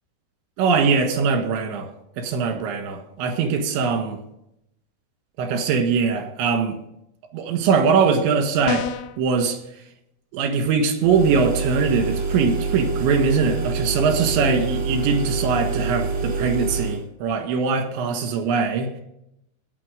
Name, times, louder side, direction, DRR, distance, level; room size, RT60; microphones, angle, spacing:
voice 1, 0.6-1.9 2.2-4.2 5.4-6.8 7.3-9.6 10.3-18.9, right 5 dB, 80° right, 5 dB, 3.9 m, -22 dB
sound 1, 8.7-9.2, left 11 dB, 85° left, 2.3 m, -26 dB
sound 2, 11.0-17.0, right 4 dB, 60° right, 1.3 m, -26 dB
18.0 x 6.5 x 5.1 m, 0.79 s
omnidirectional pair, 5.3 m